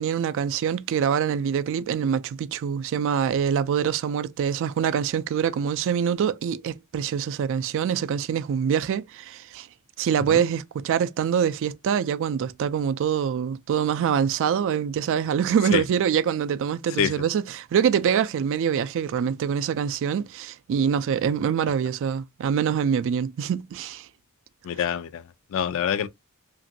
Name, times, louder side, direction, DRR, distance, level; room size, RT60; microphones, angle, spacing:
voice 1, 0.0-9.7 10.0-24.1, right 8 dB, 60° right, 0.3 m, -25 dB
voice 2, 24.6-26.1, left 8 dB, 65° left, 0.3 m, -26 dB
2.9 x 2.5 x 2.6 m
head